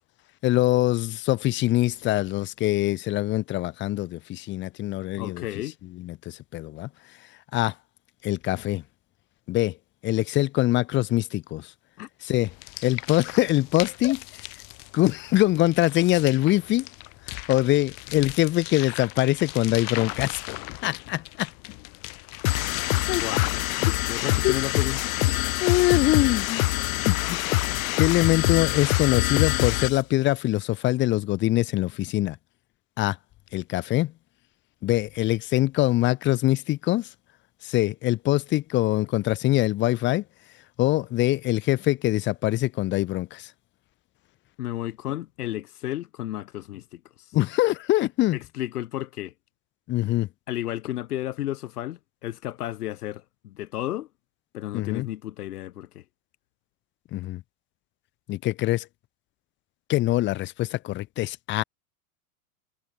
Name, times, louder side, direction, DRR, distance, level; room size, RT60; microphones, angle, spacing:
voice 1, 0.4-5.4 5.9-6.9 7.5-7.7 8.2-8.8 9.5-9.8 10.0-11.7 12.2-12.5 12.8-14.2 14.9-16.9 17.3-20.4 20.8-21.5 23.1-23.2 23.9-24.1 24.4-24.6 25.6-26.6 27.0-27.6 28.0-32.4 33.0-33.2 33.5-34.1 34.8-37.1 37.6-40.2 40.8-43.5 47.3-48.4 49.9-50.3 54.7-55.1 57.1-57.4 58.3-58.9 59.9-61.6, left 16 dB, 25° left, 1.2 m, -24 dB
voice 2, 5.2-5.7 12.0-12.1 14.0-14.1 23.2-23.6 24.1-25.1 44.6-47.3 48.3-49.3 50.5-54.1 54.5-56.0, left 14 dB, 85° left, 3.4 m, -33 dB
sound 1, 12.4-23.5, left 40 dB or more, 45° left, 4.0 m, -39 dB
sound 2, 22.4-30.0, left 19 dB, 65° left, 0.9 m, -24 dB
supercardioid pair, 160°, 44 cm